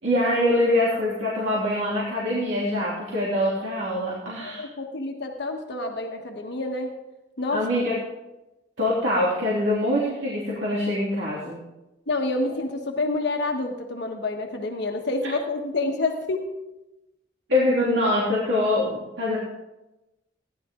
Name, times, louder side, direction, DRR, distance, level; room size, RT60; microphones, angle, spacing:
voice 1, 0.0-4.7 7.5-8.0 8.8-11.6 17.5-19.4, left 1 dB, 70° right, -7 dB, 3.1 m, -24 dB
voice 2, 4.4-7.0 7.4-7.6 12.1-16.5, left 2 dB, 65° left, 2 dB, 1.3 m, -28 dB
16.5 x 11.0 x 3.7 m, 0.97 s
head